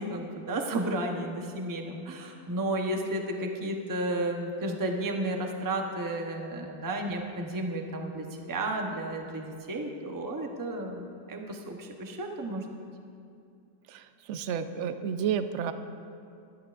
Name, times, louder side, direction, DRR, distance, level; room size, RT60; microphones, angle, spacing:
voice 1, 0.0-12.7, right 1 dB, 20° right, 2 dB, 0.5 m, -33 dB
voice 2, 13.9-15.7, right 8 dB, 75° right, 9 dB, 0.6 m, -31 dB
19.5 x 13.5 x 2.5 m, 2.5 s
omnidirectional pair, 1.9 m